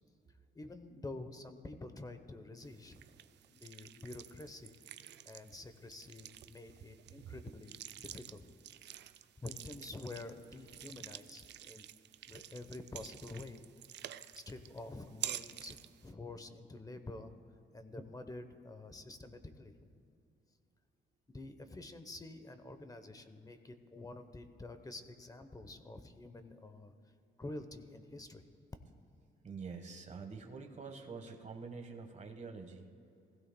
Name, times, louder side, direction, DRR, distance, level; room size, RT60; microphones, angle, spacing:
voice 1, 0.5-3.0 3.5-4.7 5.2-8.4 9.4-11.9 12.3-13.6 14.3-17.3 17.7-20.1 21.3-26.9 27.4-28.4, left 2 dB, 20° left, 9 dB, 0.9 m, -48 dB
sound 1, 2.6-16.1, right 11 dB, 60° right, 0.4 m, -49 dB
voice 2, 29.4-32.9, right 4 dB, 35° right, 4 dB, 1.3 m, -46 dB
20.5 x 15.5 x 2.2 m, 2.6 s
cardioid pair, 90°, 20 cm